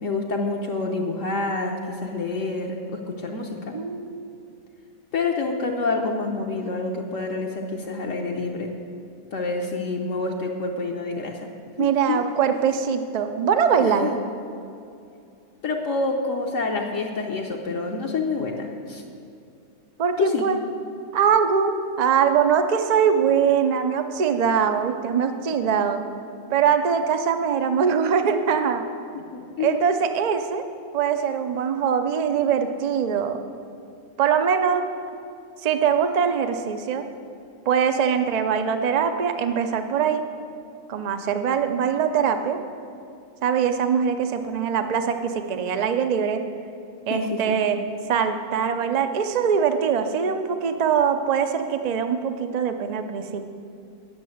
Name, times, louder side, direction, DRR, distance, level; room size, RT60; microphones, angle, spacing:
voice 1, 0.0-3.6 5.1-8.7 9.3-11.5 11.8-12.3 13.8-14.2 15.6-19.0 20.2-20.5 23.2-23.3 29.1-29.8 47.1-47.6, left 3 dB, 60° left, 0 dB, 1.1 m, -27 dB
voice 2, 3.7-4.3 11.8-14.1 20.0-20.6 21.1-26.0 26.5-28.8 29.6-30.7 30.9-33.4 34.2-34.9 35.6-37.0 37.7-40.2 40.9-42.6 43.4-46.4 47.1-47.8 48.1-53.4, right 7 dB, 55° right, 8 dB, 0.4 m, -22 dB
10.5 x 6.5 x 7.8 m, 2.5 s
omnidirectional pair, 1.5 m